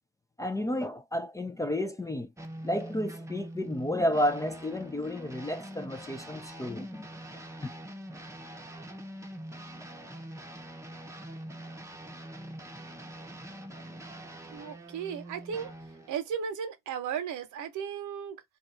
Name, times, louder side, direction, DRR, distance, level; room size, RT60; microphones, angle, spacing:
voice 1, 0.4-2.3 2.6-7.1 7.6-7.7, left 1 dB, 10° left, 0.3 m, -31 dB
sound 1, 2.4-16.2, right 1 dB, 10° right, 0.7 m, -44 dB
voice 2, 14.5-15.7 16.1-18.4, right 7 dB, 75° right, 0.9 m, -35 dB
2.3 x 2.3 x 4.0 m
cardioid pair, 90°, 30 cm